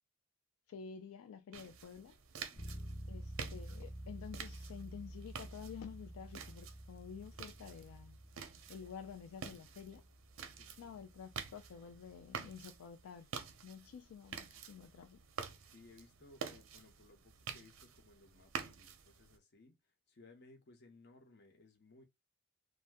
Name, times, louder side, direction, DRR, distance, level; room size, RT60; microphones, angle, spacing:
voice 1, 0.7-2.2 3.1-8.2 8.7-10.0 10.8-13.3 13.6-15.2, left 7 dB, 80° left, 0.3 m, -50 dB
sound 1, 1.5-19.4, right 6 dB, 65° right, 0.5 m, -49 dB
voice 2, 2.5-3.0 10.4-11.0 15.6-19.8 20.1-22.0, left 2 dB, 55° left, 0.7 m, -62 dB
Bass guitar, 2.6-12.3, right 1 dB, 10° left, 0.5 m, -50 dB
2.6 x 2.1 x 3.4 m
head